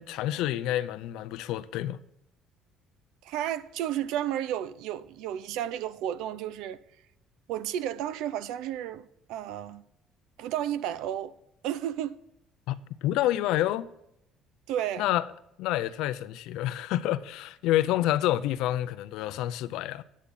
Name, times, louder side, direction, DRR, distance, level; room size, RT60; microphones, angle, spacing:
voice 1, 0.0-2.0 12.7-12.8 13.0-13.9 15.0-15.2 15.6-20.0, left 14 dB, 75° left, 0.5 m, -28 dB
voice 2, 3.2-6.8 7.5-9.8 10.4-11.3 11.6-12.2 14.7-15.1, right 11 dB, 80° right, 0.5 m, -32 dB
9.9 x 8.4 x 3.9 m
cardioid pair, 170°, 0 cm